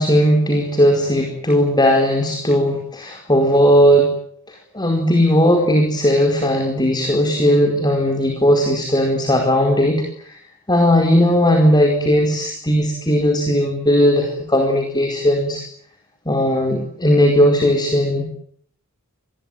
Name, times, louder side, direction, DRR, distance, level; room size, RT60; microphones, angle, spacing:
voice 1, 0.0-4.1 4.7-10.3 10.7-15.6 16.2-18.2, equal, 20° left, 3 dB, 4.8 m, -17 dB
28.5 x 21.5 x 9.3 m, 0.65 s
head